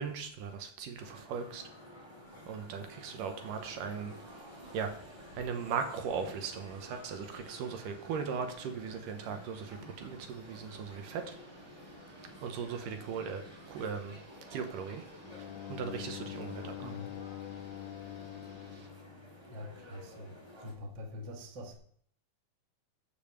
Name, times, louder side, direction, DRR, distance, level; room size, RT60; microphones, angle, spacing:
voice 1, 0.0-1.6 2.5-4.2 4.7-4.9 5.4-11.3 12.4-13.4 13.7-14.2 14.5-15.0 15.3-16.9, right 6 dB, 75° right, 6 dB, 2.4 m, -38 dB
sound 1, 1.0-20.7, equal, 10° right, 2.7 m, -52 dB
sound 2, 3.4-18.9, right 1 dB, 25° right, 1.8 m, -57 dB
Bowed string instrument, 15.2-20.1, left 12 dB, 80° left, 1.8 m, -45 dB
voice 2, 16.8-17.2 19.5-20.4 20.6-21.8, left 1 dB, 45° right, 2 dB, 1.6 m, -44 dB
10.0 x 5.3 x 7.0 m, 0.62 s
omnidirectional pair, 4.0 m